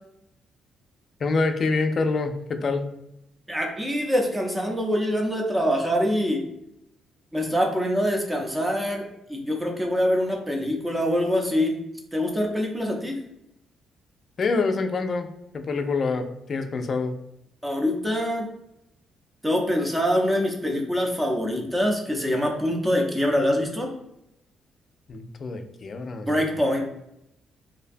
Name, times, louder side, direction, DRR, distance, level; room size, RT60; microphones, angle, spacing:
voice 1, 1.2-2.9 14.4-15.3 15.5-17.2 25.1-26.6, left 3 dB, 45° left, 7 dB, 0.3 m, -26 dB
voice 2, 3.5-6.5 7.3-11.8 12.1-13.2 17.6-18.5 19.4-23.9 26.3-26.8, equal, 10° right, 1 dB, 0.6 m, -24 dB
2.6 x 2.1 x 2.5 m, 0.83 s
cardioid pair, 90°, 0 cm